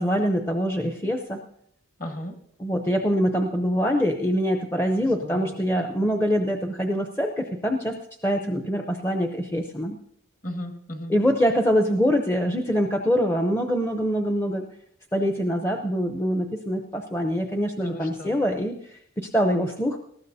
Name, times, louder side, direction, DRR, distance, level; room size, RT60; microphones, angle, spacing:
voice 1, 0.0-1.4 2.6-10.0 11.1-14.7 15.1-20.0, equal, 10° left, 4 dB, 0.6 m, -24 dB
voice 2, 2.0-2.3 5.0-6.0 10.4-11.1 17.8-18.4, left 1 dB, 40° left, 4 dB, 1.6 m, -36 dB
19.5 x 14.0 x 2.7 m, 0.70 s
head